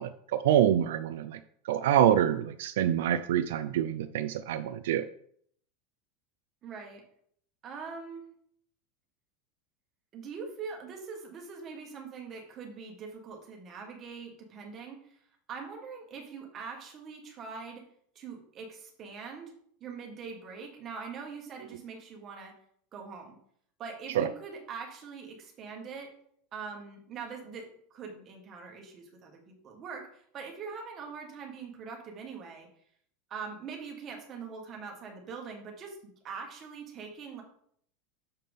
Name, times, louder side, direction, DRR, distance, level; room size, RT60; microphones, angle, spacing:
voice 1, 0.0-1.4 1.7-5.0 24.1-24.3, right 10 dB, 80° right, 11 dB, 0.4 m, -26 dB
voice 2, 6.6-7.0 7.6-8.2 10.1-15.2 15.5-17.8 18.1-19.5 19.8-22.5 22.9-23.3 23.8-26.1 26.5-32.7 33.3-37.4, right 5 dB, 25° right, 1 dB, 1.6 m, -43 dB
6.8 x 5.8 x 3.6 m, 0.64 s
supercardioid pair, 165°, 0 cm